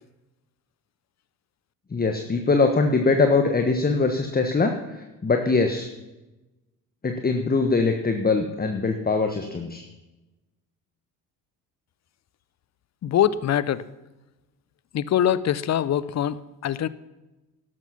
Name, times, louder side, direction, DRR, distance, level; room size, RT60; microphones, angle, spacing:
voice 1, 1.9-5.9 7.0-9.8, left 3 dB, 20° left, 5 dB, 1.4 m, -22 dB
voice 2, 13.0-13.8 14.9-16.9, left 10 dB, 35° left, 18 dB, 0.8 m, -23 dB
12.5 x 12.0 x 5.8 m, 1.0 s
hypercardioid pair, 55°, 48 cm